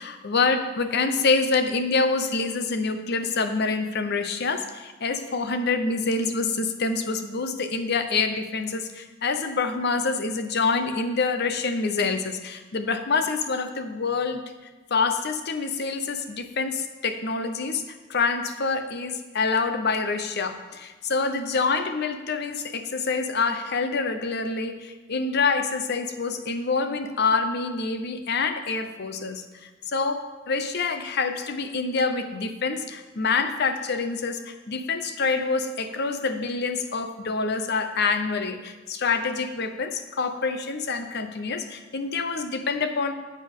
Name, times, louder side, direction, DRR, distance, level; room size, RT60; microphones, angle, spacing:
voice 1, 0.0-14.4 14.9-43.1, left 4 dB, 55° left, 8 dB, 0.8 m, -26 dB
10.0 x 7.7 x 3.7 m, 1.2 s
head